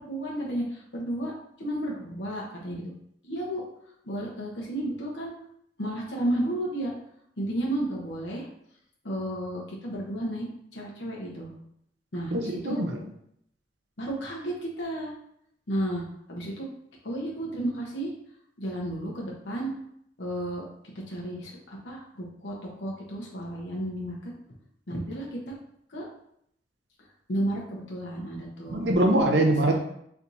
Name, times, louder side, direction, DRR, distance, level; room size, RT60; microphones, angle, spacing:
voice 1, 0.0-1.3 1.6-2.8 3.2-3.6 4.0-5.3 5.8-6.9 7.4-8.5 9.0-11.5 12.1-12.8 14.0-15.1 15.7-16.0 16.3-16.7 17.0-18.1 18.6-19.7 20.2-20.7 20.9-24.3 24.9-25.6 25.9-26.1 27.3-28.9 29.6-29.8, right 1 dB, 85° left, -2 dB, 1.0 m, -32 dB
voice 2, 12.3-13.0 28.7-29.8, right 1 dB, 70° right, 3 dB, 0.7 m, -23 dB
4.4 x 3.5 x 2.7 m, 0.72 s
head